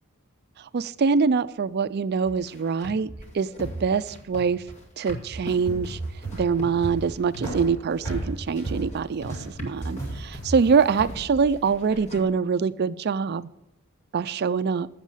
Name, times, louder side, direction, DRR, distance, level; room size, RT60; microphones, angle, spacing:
voice 1, 0.7-3.1 3.3-4.6 5.0-6.0 6.3-13.5 14.1-14.9, right 5 dB, 45° right, 14 dB, 0.4 m, -24 dB
sound 1, 2.2-12.2, right 1 dB, 30° left, 2.1 m, -38 dB
sound 2, 5.5-12.1, right 2 dB, 15° left, 5.5 m, -35 dB
14.5 x 7.4 x 5.6 m, 0.92 s
head